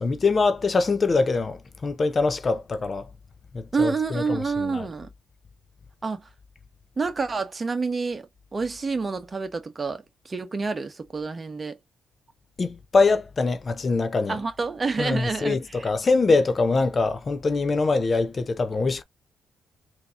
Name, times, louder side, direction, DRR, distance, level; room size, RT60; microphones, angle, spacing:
voice 1, 0.0-3.1 3.5-4.9 12.6-14.4 15.0-19.0, left 3 dB, 35° left, 0.5 m, -23 dB
voice 2, 3.7-5.1 6.0-6.3 7.0-11.8 14.3-15.9, right 4 dB, 30° right, 1.0 m, -28 dB
3.9 x 2.8 x 2.4 m
cardioid pair, 90°, 0 cm